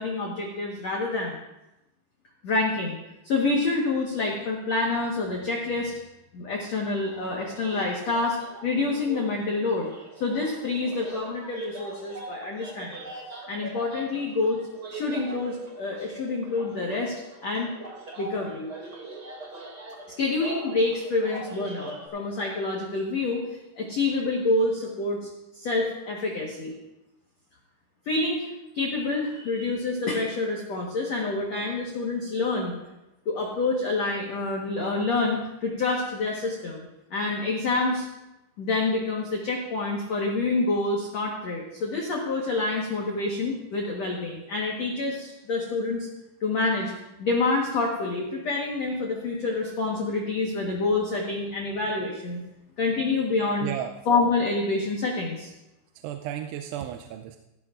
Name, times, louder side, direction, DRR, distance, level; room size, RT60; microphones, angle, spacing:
voice 1, 0.0-1.4 2.4-3.0 3.2-5.9 6.3-8.4 8.6-9.9 10.2-13.1 13.5-14.6 14.9-17.1 17.4-17.7 18.2-18.7 20.2-23.4 23.8-25.3 25.5-26.7 28.0-28.5 28.7-32.7 33.2-38.0 38.6-46.1 46.4-46.9 47.2-52.4 52.8-53.7 54.0-55.5, left 3 dB, 75° left, -2 dB, 1.5 m, -27 dB
sound 1, 7.0-22.1, right 2 dB, 30° right, 2.2 m, -42 dB
voice 2, 53.6-53.9 56.0-57.4, right 11 dB, 85° right, 5 dB, 3.0 m, -33 dB
17.5 x 15.0 x 2.5 m, 0.95 s
omnidirectional pair, 5.4 m